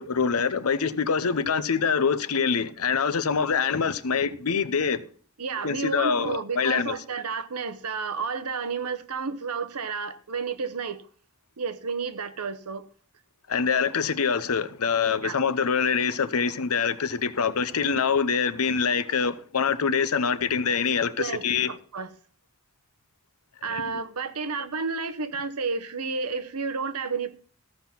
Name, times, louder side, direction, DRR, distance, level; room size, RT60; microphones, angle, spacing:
voice 1, 0.0-5.0 5.6-6.9 13.5-21.7 23.6-23.8, left 6 dB, 75° left, 0.7 m, -25 dB
voice 2, 5.4-11.0 11.6-12.9 15.2-15.4 21.2-22.1 23.6-27.4, right 5 dB, 85° right, 0.9 m, -31 dB
14.5 x 5.8 x 5.7 m
head